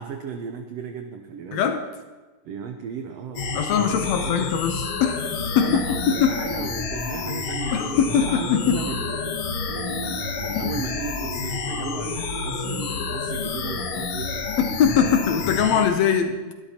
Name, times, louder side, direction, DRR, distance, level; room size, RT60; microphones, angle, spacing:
voice 1, 0.0-1.6 2.4-3.6 4.0-4.6 5.5-9.4 9.7-14.5, right 6 dB, 85° right, 5 dB, 1.4 m, -35 dB
voice 2, 1.5-1.8 3.5-5.8 6.1-6.4 7.7-8.8 10.6-10.7 14.6-16.5, left 7 dB, 75° left, 7 dB, 1.7 m, -22 dB
sound 1, 3.4-15.9, left 4 dB, 55° left, 1.6 m, -29 dB
22.5 x 12.0 x 2.9 m, 1.2 s
omnidirectional pair, 3.8 m